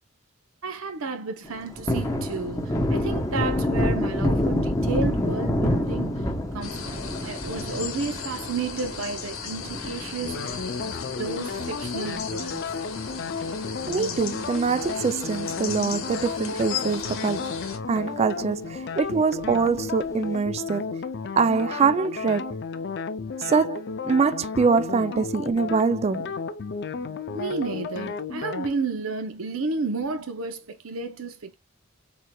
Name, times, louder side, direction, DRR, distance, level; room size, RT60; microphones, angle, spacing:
voice 1, 0.6-6.3 6.5-12.8 27.3-31.5, right 4 dB, 85° right, 0.7 m, -32 dB
Thunder, 1.4-12.2 12.6-12.7 13.0-14.5 14.8-15.0 15.3-16.1 16.5-16.6 17.0-17.1 19.4-20.0, left 1 dB, 15° left, 0.8 m, -28 dB
sound 1, 6.6-17.8, left 6 dB, 90° left, 1.1 m, -36 dB
sound 2, 10.2-28.7, left 5 dB, 55° left, 0.5 m, -33 dB
voice 2, 13.9-17.5 17.9-21.0 21.4-22.6 23.4-26.3, right 5 dB, 30° right, 0.3 m, -24 dB
4.4 x 3.7 x 2.2 m
head